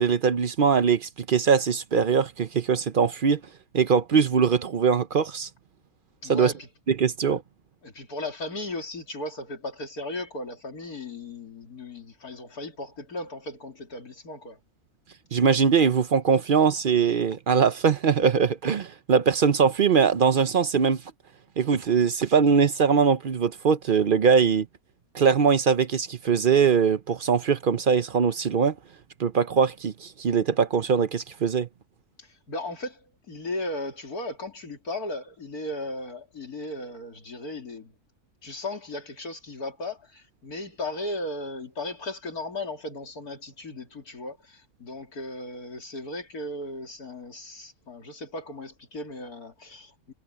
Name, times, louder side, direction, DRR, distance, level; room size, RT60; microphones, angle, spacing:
voice 1, 0.0-3.4 3.7-5.5 6.3-6.5 6.9-7.4 15.3-21.0 21.6-24.7 25.1-28.7 29.2-31.7, right 6 dB, 55° right, 0.5 m, -22 dB
voice 2, 6.2-6.7 7.8-14.6 32.2-37.9 38.4-50.1, left 2 dB, 65° left, 3.5 m, -36 dB
omnidirectional pair, 1.7 m